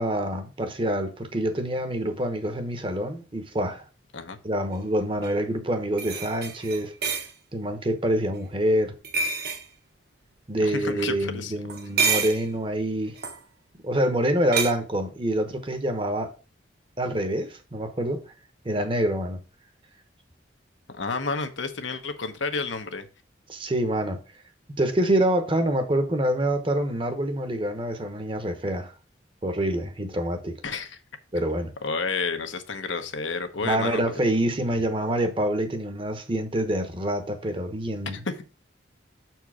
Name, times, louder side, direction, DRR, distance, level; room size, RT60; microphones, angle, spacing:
voice 1, 0.0-3.9 4.4-6.9 7.5-8.9 10.5-13.2 13.8-16.3 17.0-18.2 18.6-19.4 23.5-24.2 24.8-28.9 29.4-30.6 31.3-31.7 33.6-38.2, right 1 dB, 25° right, 0.9 m, -26 dB
sound 1, 5.2-5.3 6.0-7.3 9.0-9.6 11.7-12.5 13.2-13.4 14.5-14.7, right 5 dB, 55° right, 1.0 m, -27 dB
voice 2, 10.6-11.7 20.9-23.1 30.6-31.0 31.8-34.0 38.2-38.4, left 4 dB, 80° left, 1.0 m, -30 dB
6.8 x 4.6 x 4.8 m
head